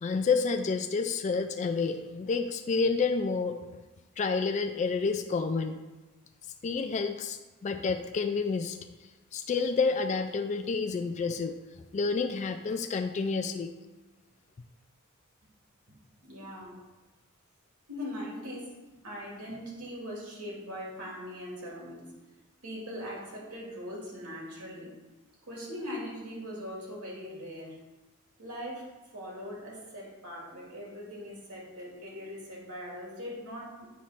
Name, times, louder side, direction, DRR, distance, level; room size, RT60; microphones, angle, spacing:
voice 1, 0.0-3.6 4.2-5.8 6.6-8.8 9.3-11.6 11.9-13.7, left 4 dB, 35° left, 6 dB, 0.3 m, -29 dB
voice 2, 16.2-16.8 17.9-18.7 19.0-22.1 22.6-24.9 25.4-27.8 28.4-28.9 29.1-33.9, equal, 80° right, -4 dB, 2.2 m, -40 dB
8.3 x 3.1 x 5.7 m, 1.1 s
head